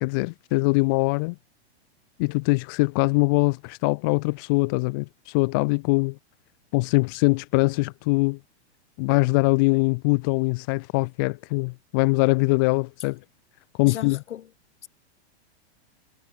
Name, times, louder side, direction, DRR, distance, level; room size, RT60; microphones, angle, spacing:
voice 1, 0.0-1.3 2.2-6.2 6.7-8.4 9.0-13.2 13.8-14.2, left 28 dB, 20° left, 0.6 m, -22 dB
voice 2, 13.8-14.5, left 10 dB, 90° left, 6.8 m, -36 dB
supercardioid pair, 180°, 33 cm